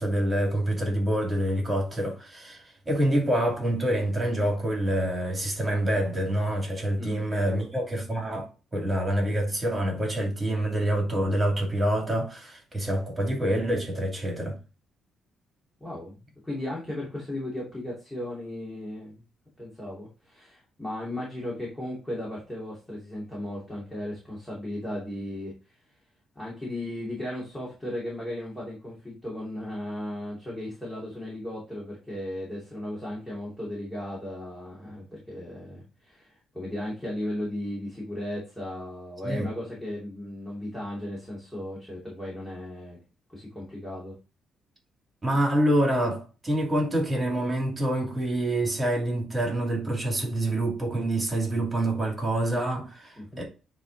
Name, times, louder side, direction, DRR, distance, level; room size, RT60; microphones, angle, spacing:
voice 1, 0.0-14.6 39.2-39.5 45.2-53.4, right 1 dB, 20° right, 2.6 m, -26 dB
voice 2, 15.8-19.2 19.6-25.8 26.4-43.0 43.3-44.1 53.2-53.4, left 1 dB, 5° left, 2.6 m, -36 dB
9.0 x 3.4 x 4.0 m
cardioid pair, 130°, 0 cm